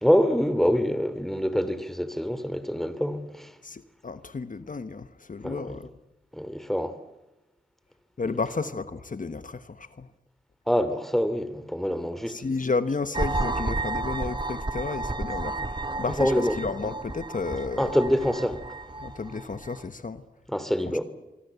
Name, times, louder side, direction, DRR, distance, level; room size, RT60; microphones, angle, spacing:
voice 1, 0.0-3.5 5.4-5.8 6.3-6.9 10.7-12.4 16.1-16.6 17.8-18.6 20.5-21.0, equal, ahead, 2.8 m, -25 dB
voice 2, 3.6-5.9 8.2-10.1 12.3-17.9 19.0-20.2, left 4 dB, 55° left, 1.2 m, -32 dB
sound 1, 13.1-19.9, right 2 dB, 30° right, 2.0 m, -32 dB
24.5 x 24.5 x 8.2 m
wide cardioid pair, 60°, 16 cm